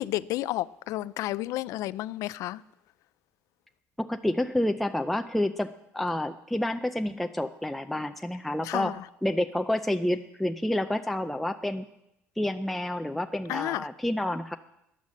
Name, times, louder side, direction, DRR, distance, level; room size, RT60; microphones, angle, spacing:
voice 1, 0.0-2.6 8.6-8.9 13.5-13.9, left 16 dB, 75° left, 0.5 m, -31 dB
voice 2, 4.0-8.9 9.2-11.9 12.4-14.6, left 1 dB, 5° left, 0.4 m, -29 dB
14.0 x 10.0 x 7.4 m
cardioid pair, 135°, 6 cm